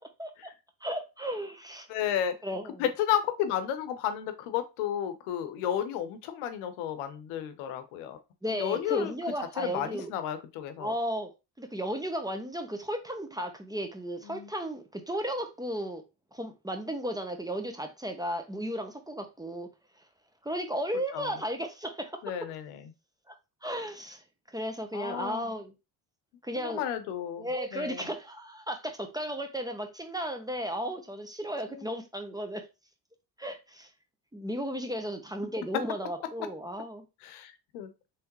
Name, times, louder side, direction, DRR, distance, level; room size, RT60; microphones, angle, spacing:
voice 1, 0.8-1.9 2.4-2.8 8.4-10.1 10.8-11.3 11.6-16.0 16.3-19.7 20.4-22.2 23.3-23.4 23.6-25.7 26.4-26.8 27.4-32.6 33.4-33.9 34.3-37.0, equal, 10° right, 0.8 m, -34 dB
voice 2, 1.9-2.3 2.8-8.2 8.5-9.1 9.6-10.9 14.3-14.5 21.1-21.4 22.2-22.8 24.9-25.5 26.5-28.1 31.7-31.8 37.2-37.9, left 10 dB, 80° left, 0.8 m, -32 dB
3.5 x 3.4 x 2.9 m
supercardioid pair, 70°, 49 cm